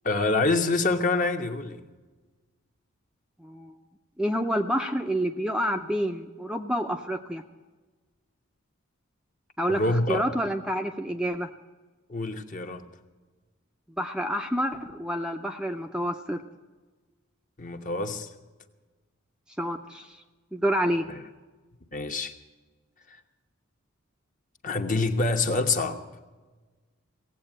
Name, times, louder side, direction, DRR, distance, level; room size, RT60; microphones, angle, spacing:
voice 1, 0.0-1.8 9.7-10.3 12.1-12.8 17.6-18.3 21.1-21.2 21.9-22.3 24.6-26.0, left 3 dB, 40° left, 1.1 m, -26 dB
voice 2, 3.4-3.7 4.2-7.4 9.6-11.5 14.0-16.4 19.6-20.2 20.5-21.0, equal, 5° right, 0.6 m, -28 dB
17.0 x 8.2 x 8.8 m
head